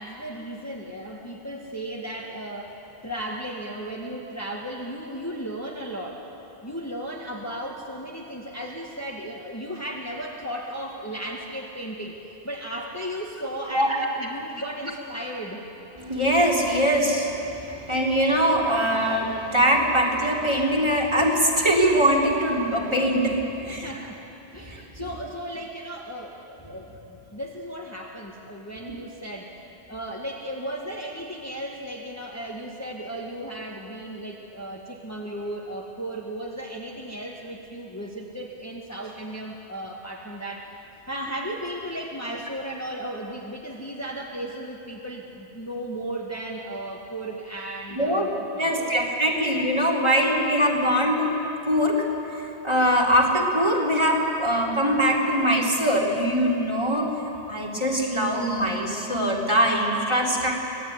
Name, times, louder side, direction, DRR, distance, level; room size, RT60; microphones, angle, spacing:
voice 1, 0.0-2.8 3.0-6.2 6.6-15.6 23.7-24.2 24.5-40.7 41.1-48.9, right 1 dB, 15° left, -2 dB, 1.8 m, -35 dB
voice 2, 16.0-23.9 24.5-24.8 47.9-48.3 48.5-51.3 51.6-52.1 52.6-60.6, equal, 25° right, -3 dB, 3.6 m, -22 dB
25.5 x 18.5 x 9.5 m, 3.0 s
omnidirectional pair, 1.1 m